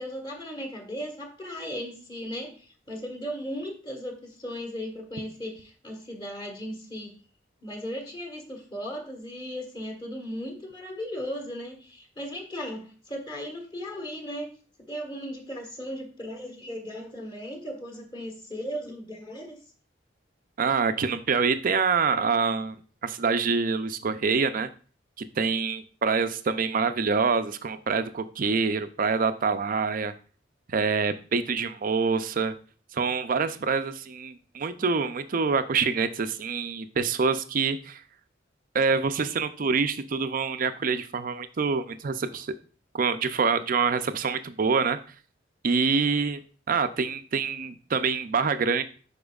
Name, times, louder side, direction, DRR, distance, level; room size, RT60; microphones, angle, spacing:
voice 1, 0.0-7.1 7.6-14.5 14.8-19.6, equal, 25° left, 3 dB, 1.5 m, -37 dB
voice 2, 20.6-22.7 23.0-24.7 25.2-30.1 30.7-32.5 32.9-38.0 38.7-42.5 42.9-45.0 45.6-46.4 46.7-48.8, right 5 dB, 45° right, 11 dB, 0.5 m, -26 dB
10.0 x 4.3 x 2.4 m, 0.40 s
head